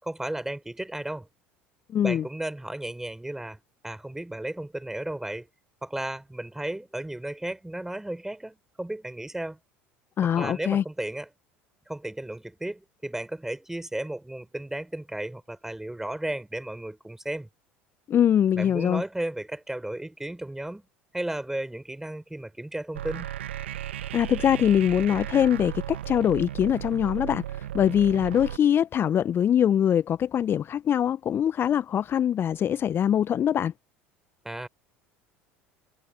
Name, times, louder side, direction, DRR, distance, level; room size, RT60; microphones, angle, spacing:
voice 1, 0.0-1.3 2.0-5.5 5.8-9.6 10.2-11.3 11.9-17.5 18.5-20.8 21.1-23.3 34.4-34.7, right 1 dB, 5° right, 5.4 m, -34 dB
voice 2, 1.9-2.2 10.2-10.8 18.1-19.0 24.1-33.7, left 9 dB, 40° left, 0.6 m, -23 dB
sound 1, 22.9-28.6, right 11 dB, 80° right, 0.9 m, -35 dB
hypercardioid pair, 70°, 6 cm